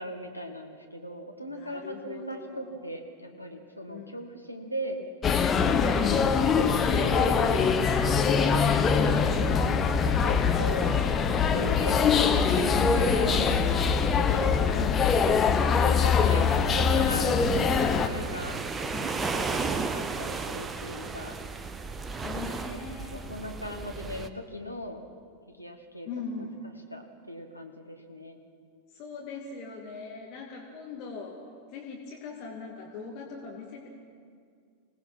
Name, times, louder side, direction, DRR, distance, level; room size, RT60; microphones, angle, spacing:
voice 1, 0.0-5.0 6.0-8.3 10.1-15.0 15.3-17.4 17.8-18.6 19.3-21.4 22.7-22.8 23.1-25.0 25.5-26.1 26.3-26.5 26.9-28.4, equal, 90° left, 3 dB, 1.9 m, -39 dB
voice 2, 1.5-2.7 3.9-4.2 5.7-6.3 14.7-15.2 18.1-19.3 22.1-23.1 26.0-26.6 28.9-31.4 31.7-33.9, left 5 dB, 40° left, 0 dB, 2.4 m, -41 dB
sound 1, 5.2-18.1, left 5 dB, 20° left, 1.2 m, -23 dB
sound 2, 17.4-24.3, right 4 dB, 15° right, 0.9 m, -34 dB
26.0 x 18.5 x 6.0 m, 2.2 s
figure-of-eight pair, 90°, 0 cm